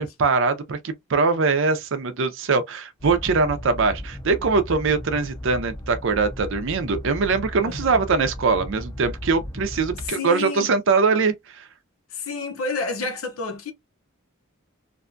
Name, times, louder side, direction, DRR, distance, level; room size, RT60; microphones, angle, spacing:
voice 1, 0.0-11.6, right 4 dB, 65° right, 0.5 m, -22 dB
sound 1, 3.0-10.1, left 1 dB, 15° left, 0.5 m, -36 dB
voice 2, 7.6-8.0 9.9-10.7 12.1-13.7, left 3 dB, 75° left, 0.7 m, -30 dB
2.6 x 2.2 x 2.5 m
head